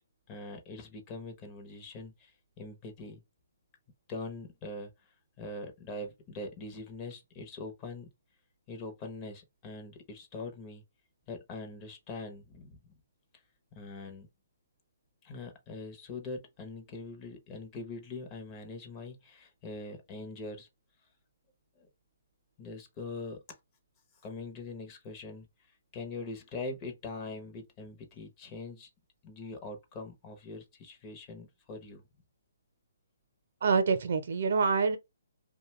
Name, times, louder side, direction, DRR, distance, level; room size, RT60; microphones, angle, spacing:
voice 1, 0.3-3.2 4.1-4.9 5.4-8.1 8.7-10.8 11.3-12.9 13.7-14.3 15.2-20.7 21.8-21.9 22.6-23.4 24.2-25.5 25.9-28.9 29.2-32.0, left 3 dB, 25° left, 0.8 m, -42 dB
voice 2, 33.6-35.0, right 4 dB, 60° right, 0.7 m, -26 dB
2.5 x 2.2 x 3.1 m
hypercardioid pair, 155°, 0 cm